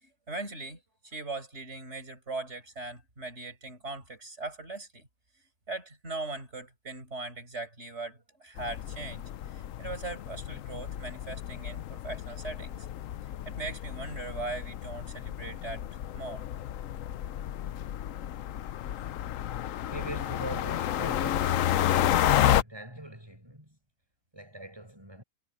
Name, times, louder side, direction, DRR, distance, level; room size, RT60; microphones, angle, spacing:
voice 1, 0.0-5.1 5.7-12.9 13.5-15.9 16.1-16.4, right 3 dB, 50° right, 5.5 m, -40 dB
sound 1, 8.6-22.6, left 11 dB, 70° left, 1.0 m, -31 dB
voice 2, 19.5-23.8 24.3-25.2, right 1 dB, 15° right, 7.2 m, -43 dB
omnidirectional pair, 1.5 m